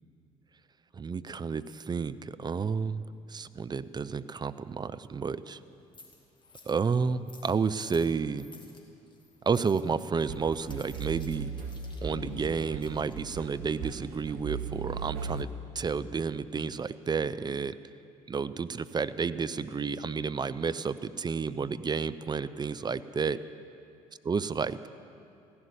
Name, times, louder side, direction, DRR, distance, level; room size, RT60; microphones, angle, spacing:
voice 1, 0.9-3.0 3.3-5.6 6.7-8.5 9.4-11.5 12.0-17.8 18.3-23.4 24.3-24.8, right 5 dB, 25° right, 14 dB, 0.5 m, -31 dB
sound 1, 3.3-15.3, left 3 dB, 25° left, 2.3 m, -58 dB
sound 2, 10.3-15.4, right 5 dB, 70° right, 0.9 m, -38 dB
15.5 x 11.0 x 7.1 m, 2.6 s
figure-of-eight pair, 50°, 18 cm